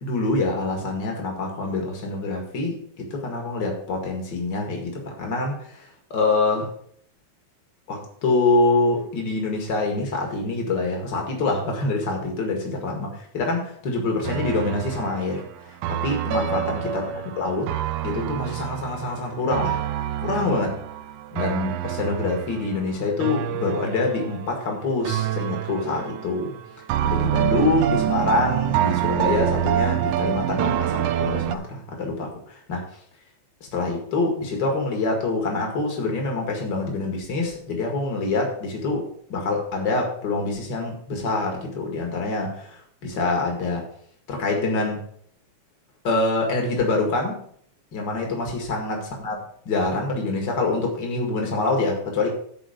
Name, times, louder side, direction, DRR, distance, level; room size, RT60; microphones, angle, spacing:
voice 1, 0.0-5.8 6.1-6.7 7.9-17.7 18.0-19.8 20.2-20.8 21.3-26.5 27.0-32.9 33.6-43.9 44.3-45.1 46.0-47.4 47.9-49.3 49.6-52.3, left 3 dB, 55° left, 1 dB, 1.2 m, -25 dB
sound 1, 14.2-24.7 25.1-26.5 26.9-31.6, right 12 dB, 90° right, 2.9 m, -27 dB
Piano, 16.3-18.3, right 5 dB, 70° right, 2.0 m, -32 dB
10.0 x 4.8 x 6.5 m, 0.62 s
omnidirectional pair, 5.2 m